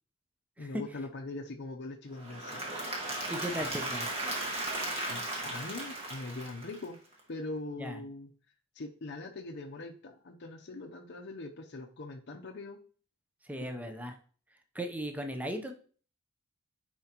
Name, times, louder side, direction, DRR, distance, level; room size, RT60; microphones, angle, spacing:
voice 1, 0.6-2.6 5.1-7.0 7.3-8.3 8.8-12.8 13.6-14.0, left 2 dB, 50° left, 2 dB, 0.6 m, -42 dB
Applause / Crowd, 2.1-7.1, right 1 dB, 25° right, 1.6 m, -36 dB
voice 2, 3.3-4.1 7.7-8.0 13.5-14.2 14.7-15.7, equal, 5° right, 5 dB, 0.6 m, -37 dB
9.6 x 4.4 x 2.9 m, 0.43 s
head